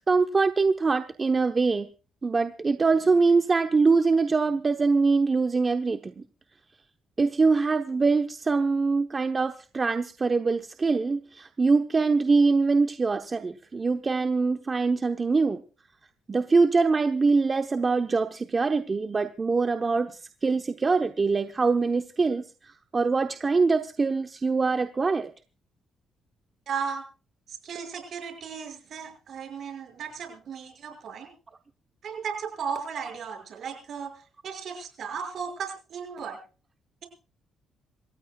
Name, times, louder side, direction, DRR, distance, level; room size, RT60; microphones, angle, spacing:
voice 1, 0.0-1.9 2.2-6.2 7.2-15.6 16.3-25.3, right 4 dB, 30° right, 6 dB, 0.9 m, -23 dB
voice 2, 26.7-27.0 27.5-31.3 32.0-36.4, right 6 dB, 60° right, 5 dB, 6.1 m, -35 dB
27.5 x 15.5 x 2.4 m, 0.34 s
cardioid pair, 90°, 0 cm